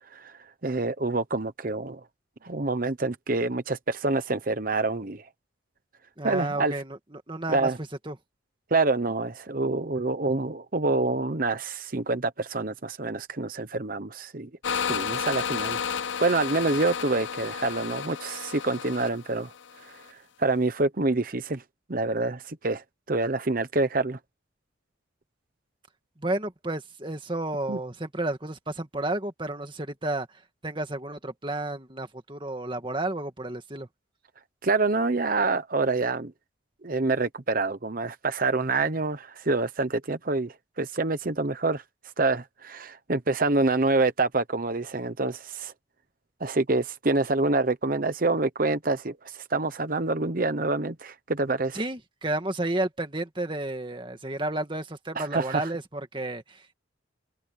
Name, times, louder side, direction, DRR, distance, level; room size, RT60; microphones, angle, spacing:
voice 1, 0.6-2.0 2.4-5.3 6.2-6.7 7.5-7.8 8.7-15.8 16.2-19.5 20.4-21.6 21.9-24.2 27.7-27.8 34.6-36.3 36.8-41.8 42.2-45.7 46.4-51.8 55.2-55.7, right 3 dB, 45° right, 0.9 m, -27 dB
voice 2, 6.2-7.7 8.1-8.2 26.2-33.9 51.7-56.7, right 2 dB, 25° right, 2.0 m, -32 dB
sound 1, 14.6-20.1, left 7 dB, 75° left, 0.7 m, -32 dB
head